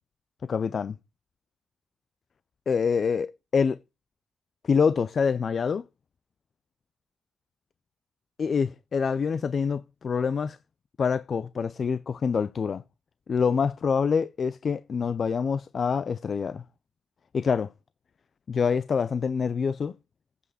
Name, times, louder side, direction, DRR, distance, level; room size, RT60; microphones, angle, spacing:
voice 1, 0.4-1.0 2.7-3.8 4.6-5.9 8.4-10.6 11.0-12.8 13.3-16.6 17.3-17.7 18.5-20.0, left 6 dB, 45° left, 0.3 m, -26 dB
8.1 x 5.0 x 4.8 m
cardioid pair, 115°, 0 cm